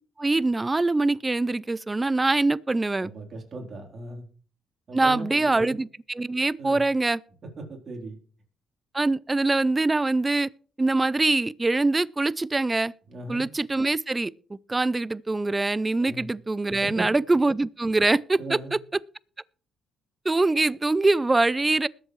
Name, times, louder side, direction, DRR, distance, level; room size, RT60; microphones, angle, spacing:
voice 1, 0.2-3.1 4.9-7.2 8.9-10.5 10.8-12.9 13.3-14.3 14.7-18.6 20.3-21.9, right 2 dB, 20° right, 0.4 m, -23 dB
voice 2, 3.0-4.2 4.9-5.7 6.6-6.8 7.6-8.2 13.1-13.4 16.0-16.3 16.8-17.1 18.4-18.7, right 2 dB, 45° right, 3.6 m, -37 dB
21.0 x 7.3 x 3.2 m
cardioid pair, 90°, 0 cm